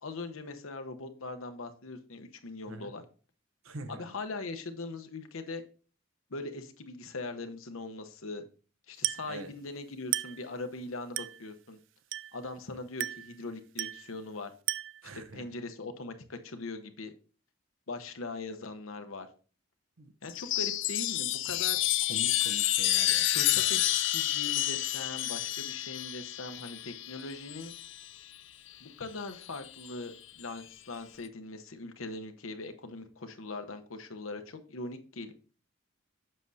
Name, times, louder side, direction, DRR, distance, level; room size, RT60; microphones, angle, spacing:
voice 1, 0.0-3.0 3.9-5.6 6.3-8.4 8.9-11.8 12.3-14.5 15.1-17.1 17.9-19.3 20.2-21.8 23.3-27.7 28.8-35.3, left 3 dB, 80° left, 0.9 m, -41 dB
voice 2, 3.6-4.1 9.2-9.5 15.0-15.4 20.0-20.1 22.1-23.3, right 1 dB, 80° right, 0.9 m, -44 dB
Glass, 9.0-9.4 10.1-10.5 11.2-11.5 12.1-12.5 13.0-13.4 13.8-14.1 14.7-15.1, right 15 dB, 60° right, 0.3 m, -34 dB
Chime, 20.3-28.1 29.3-29.9, left 14 dB, 60° left, 0.5 m, -29 dB
7.6 x 6.3 x 2.7 m
head